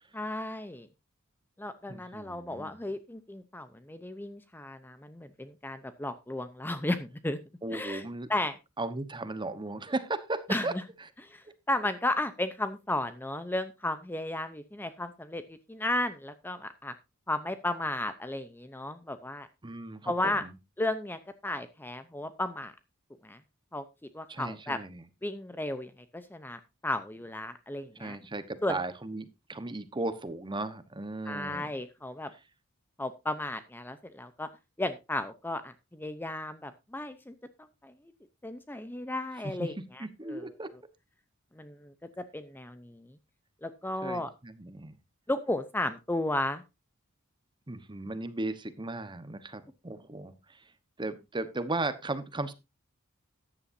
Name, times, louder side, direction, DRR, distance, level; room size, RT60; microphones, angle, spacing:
voice 1, 0.1-0.9 1.6-7.4 7.7-8.0 8.3-8.6 10.5-10.8 11.2-16.9 17.3-19.5 20.0-20.4 20.8-22.7 23.2-23.4 23.7-23.8 24.1-24.8 25.2-28.2 28.6-28.8 31.2-32.3 33.0-34.5 34.8-37.3 37.8-37.9 38.4-40.5 41.6-43.1 43.6-44.3 45.3-46.6, left 1 dB, 10° left, 11 dB, 0.7 m, -34 dB
voice 2, 1.9-2.7 7.6-8.3 8.8-10.7 19.6-20.5 24.3-25.0 28.0-31.7 39.4-39.7 40.0-40.7 44.0-44.9 47.7-50.6 51.0-52.5, right 2 dB, 20° right, 12 dB, 1.1 m, -36 dB
14.0 x 10.0 x 2.7 m, 0.25 s
head